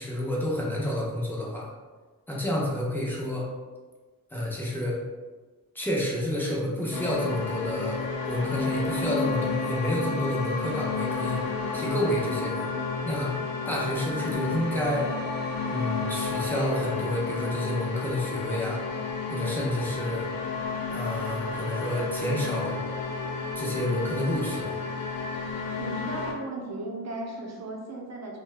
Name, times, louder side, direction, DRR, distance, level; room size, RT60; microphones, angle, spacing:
voice 1, 0.0-1.7 2.3-3.5 4.3-5.0 5.7-11.4 11.7-12.7 13.0-13.3 13.7-15.1 15.7-18.8 19.3-20.3 20.9-22.8 23.5-24.7, left 1 dB, 5° left, -4 dB, 0.7 m, -29 dB
sound 1, 6.9-26.3, left 4 dB, 85° left, 0.6 m, -31 dB
voice 2, 25.8-28.4, right 2 dB, 50° right, -1 dB, 0.7 m, -36 dB
2.7 x 2.1 x 3.3 m, 1.3 s
wide cardioid pair, 95°, 33 cm